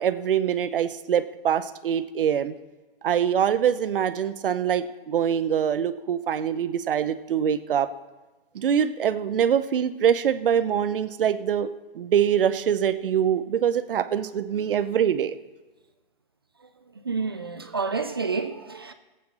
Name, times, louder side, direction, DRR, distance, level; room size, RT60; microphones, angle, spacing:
voice 1, 0.0-2.5 3.0-7.9 8.5-15.3, right 8 dB, 65° right, 0.8 m, -24 dB
voice 2, 17.0-18.9, right 4 dB, 25° right, 0.3 m, -29 dB
19.5 x 8.5 x 4.3 m
hypercardioid pair, 170°, 29 cm